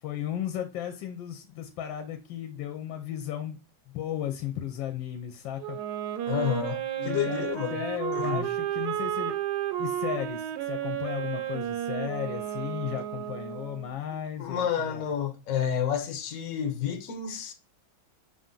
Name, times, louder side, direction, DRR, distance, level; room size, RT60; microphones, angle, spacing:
voice 1, 0.0-3.6 3.9-5.8 7.0-9.4 9.8-15.1, left 10 dB, 75° left, 1.2 m, -35 dB
Wind instrument woodwind instrument, 5.6-13.9, right 11 dB, 75° right, 1.0 m, -32 dB
voice 2, 6.3-7.8 8.1-8.5 14.4-17.5, left 9 dB, 60° left, 0.9 m, -30 dB
5.6 x 2.5 x 3.7 m
omnidirectional pair, 2.2 m